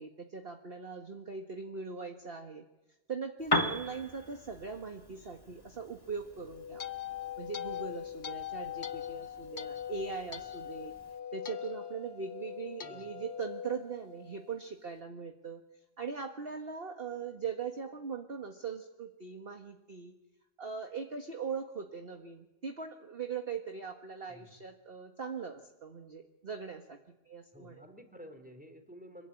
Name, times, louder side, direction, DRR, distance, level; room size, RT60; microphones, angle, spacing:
voice 1, 0.0-2.6 3.1-6.8 7.4-10.9 11.3-15.6 16.0-20.1 20.6-27.0 27.2-27.8, right 5 dB, 35° right, 4 dB, 1.7 m, -40 dB
Piano, 3.4-11.2, left 1 dB, 15° left, 1.3 m, -39 dB
sound 1, 6.3-14.6, left 10 dB, 45° left, 1.3 m, -41 dB
voice 2, 27.5-29.3, equal, 5° right, 6 dB, 3.8 m, -51 dB
26.0 x 23.0 x 9.9 m, 1.0 s
omnidirectional pair, 1.7 m